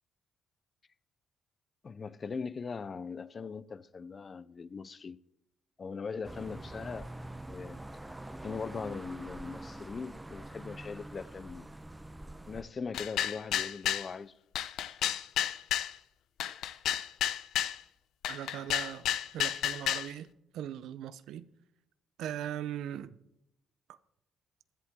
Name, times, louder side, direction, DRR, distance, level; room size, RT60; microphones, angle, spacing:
voice 1, 1.8-5.2 5.8-7.1 7.4-7.8 8.4-11.7 12.5-14.4 16.5-16.6, left 5 dB, 40° left, 0.5 m, -40 dB
sound 1, 6.2-12.6, right 1 dB, 10° right, 0.8 m, -45 dB
sound 2, 12.9-14.1 14.6-15.9 16.4-17.8 18.2-20.1, left 11 dB, 80° left, 0.6 m, -31 dB
voice 2, 18.3-19.1 19.3-21.5 22.2-23.2, right 11 dB, 85° right, 0.6 m, -39 dB
16.0 x 11.0 x 3.6 m
cardioid pair, 90°, 0 cm